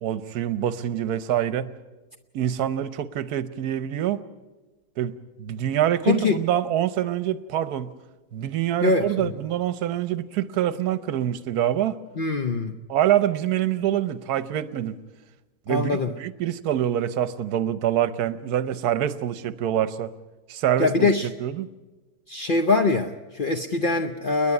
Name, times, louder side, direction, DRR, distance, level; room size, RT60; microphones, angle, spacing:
voice 1, 0.0-1.7 2.3-4.2 5.0-5.1 5.4-7.9 8.3-12.0 12.9-15.0 15.7-20.1 20.5-21.7, right 11 dB, 60° right, 14 dB, 1.2 m, -25 dB
voice 2, 6.0-6.4 8.8-9.3 12.2-12.7 15.7-16.1 20.8-21.3 22.3-24.5, left 3 dB, 60° left, 5 dB, 0.5 m, -23 dB
29.5 x 10.5 x 9.7 m, 1.2 s
omnidirectional pair, 2.1 m